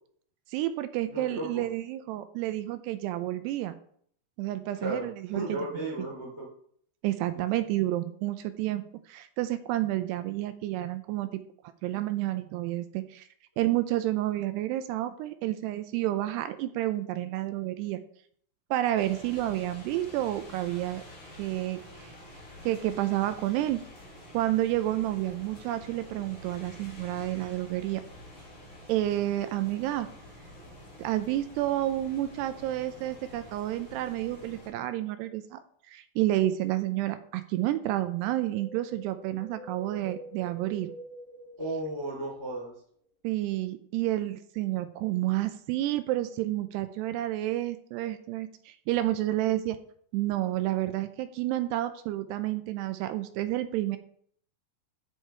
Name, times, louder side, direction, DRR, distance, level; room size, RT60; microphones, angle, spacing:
voice 1, 0.5-3.8 4.4-5.4 7.0-8.8 9.1-11.4 11.8-13.3 13.6-18.0 18.7-21.0 21.4-22.1 22.6-23.8 24.3-28.0 28.9-30.1 31.0-35.6 35.9-40.9 43.2-49.8 50.1-54.0, right 14 dB, 80° right, 11 dB, 2.6 m, -30 dB
voice 2, 1.1-1.7 4.7-6.5 7.3-7.6 41.6-42.7, right 2 dB, 10° left, -3 dB, 1.3 m, -35 dB
sound 1, 18.9-34.7, left 1 dB, 45° left, 5.1 m, -48 dB
Wind, 38.2-42.6 42.8-42.9, right 1 dB, 80° left, 0.7 m, -47 dB
14.0 x 5.0 x 4.4 m, 0.62 s
omnidirectional pair, 4.9 m